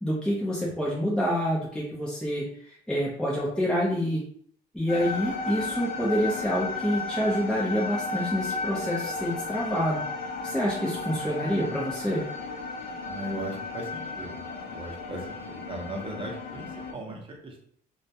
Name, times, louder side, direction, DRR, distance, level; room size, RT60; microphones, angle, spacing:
voice 1, 0.0-4.2 4.7-10.0 10.4-12.2, equal, 5° left, -5 dB, 0.4 m, -27 dB
sound 1, 4.9-16.9, left 3 dB, 60° left, 0.5 m, -34 dB
voice 2, 13.1-14.3 14.7-17.6, right 1 dB, 30° right, 0 dB, 0.7 m, -38 dB
2.2 x 2.1 x 2.7 m, 0.63 s
cardioid pair, 110°, 17 cm